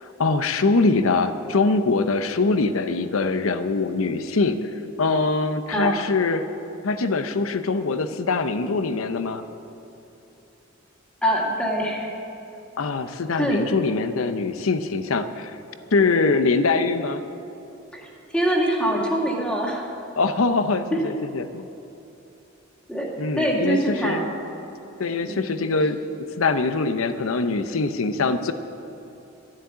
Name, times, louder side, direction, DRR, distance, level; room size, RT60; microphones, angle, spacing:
voice 1, 0.2-4.7 5.0-6.4 6.8-9.4 12.8-15.5 15.9-17.2 20.2-21.7 23.2-24.2 25.0-26.0 26.4-28.5, left 3 dB, 90° left, 10 dB, 0.7 m, -23 dB
voice 2, 11.2-12.1 13.4-13.6 17.9-19.8 20.9-21.0 22.9-24.3 25.2-25.4, right 1 dB, 5° left, -3 dB, 2.2 m, -24 dB
13.0 x 7.6 x 9.5 m, 3.0 s
head